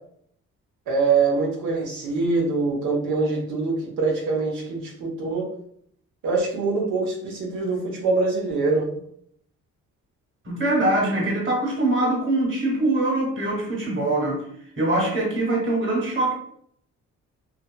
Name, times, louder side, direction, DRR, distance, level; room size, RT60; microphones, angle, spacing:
voice 1, 0.9-5.5 6.2-8.9, right 4 dB, 90° right, 1.0 m, -24 dB
voice 2, 10.4-14.4 14.8-16.3, right 2 dB, 40° right, 1.3 m, -23 dB
2.9 x 2.8 x 2.2 m
cardioid pair, 90°, 30 cm